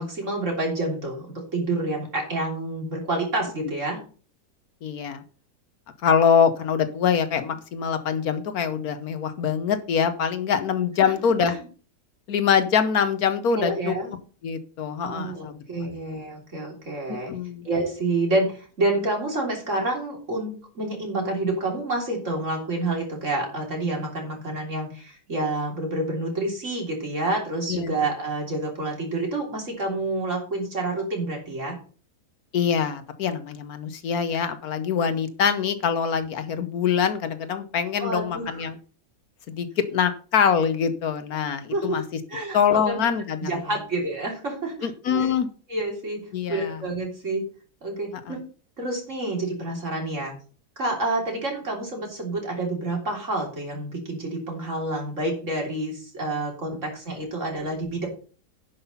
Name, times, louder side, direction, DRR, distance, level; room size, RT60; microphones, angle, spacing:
voice 1, 0.0-4.0 10.5-10.6 11.0-11.1 11.5-11.7 13.5-14.1 15.0-17.3 17.6-31.8 38.0-38.6 41.7-42.0 42.3-43.1 43.4-45.3 45.7-47.4 47.8-48.4 48.8-50.3 50.8-58.1, right 2 dB, 50° right, 0 dB, 3.7 m, -28 dB
voice 2, 4.8-5.2 6.0-11.6 12.3-14.0 14.4-15.6 17.3-17.7 27.7-28.0 32.5-38.8 39.5-42.0 42.5-43.5 44.8-45.5 46.3-46.8 48.3-48.4, left 7 dB, 70° left, 10 dB, 1.3 m, -24 dB
10.5 x 5.7 x 5.5 m, 0.39 s
omnidirectional pair, 1.7 m